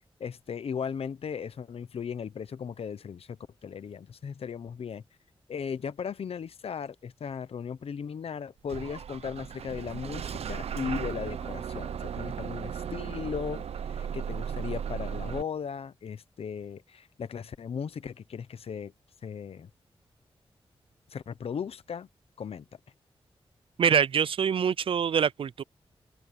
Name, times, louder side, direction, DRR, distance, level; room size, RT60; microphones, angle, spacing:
voice 1, 0.2-5.0 5.5-18.9 19.2-19.7 21.1-22.1 22.4-22.6, left 7 dB, 75° left, 0.9 m, -37 dB
Bus / Engine starting, 8.7-15.4, right 8 dB, 85° right, 0.8 m, -36 dB
voice 2, 23.8-25.6, right 7 dB, 60° right, 0.4 m, -25 dB
open air
wide cardioid pair, 110°, 10 cm